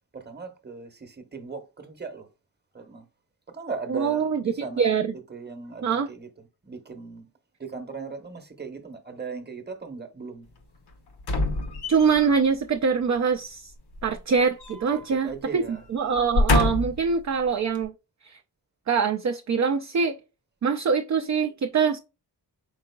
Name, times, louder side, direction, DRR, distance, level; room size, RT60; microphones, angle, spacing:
voice 1, 0.1-2.3 2.7-3.1 3.5-7.3 7.6-10.5 14.9-15.8, right 5 dB, 25° right, 0.9 m, -38 dB
voice 2, 3.9-4.4 4.8-5.1 5.8-6.1 11.9-13.7 14.0-17.9 18.2-18.4 18.9-20.2 20.6-22.0, right 5 dB, 45° right, 0.4 m, -24 dB
sound 1, 11.2-12.4 13.9-15.1 15.4-15.6 16.1-17.1 17.7-17.8, left 2 dB, 70° left, 0.8 m, -25 dB
4.7 x 3.8 x 2.2 m
wide cardioid pair, 70°, 41 cm